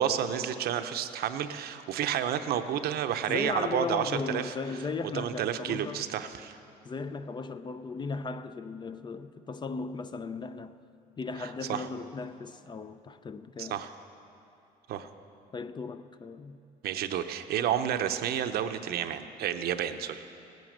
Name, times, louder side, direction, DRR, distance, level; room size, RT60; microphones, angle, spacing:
voice 1, 0.0-4.5 5.1-6.6 11.4-11.9 13.6-13.9 14.9-15.1 16.8-20.2, right 9 dB, 70° right, 0.7 m, -30 dB
voice 2, 3.3-6.0 6.8-10.7 11.2-13.8 15.5-16.6, left 4 dB, 25° left, 0.5 m, -36 dB
16.5 x 9.3 x 6.5 m
cardioid pair, 110°, 17 cm